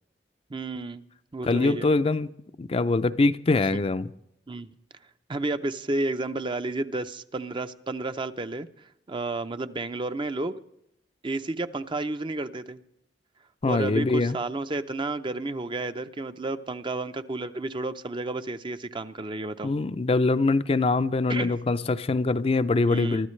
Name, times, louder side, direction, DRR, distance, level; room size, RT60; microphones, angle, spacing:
voice 1, 0.5-1.0 1.3-1.9 4.5-4.7 5.3-8.7 9.1-10.6 11.2-12.8 13.7-19.7 21.3-21.5 22.9-23.2, right 2 dB, 30° right, 0.6 m, -31 dB
voice 2, 1.4-2.3 2.6-4.1 13.6-14.4 19.6-23.3, left 3 dB, 35° left, 0.5 m, -23 dB
25.0 x 13.0 x 3.2 m
head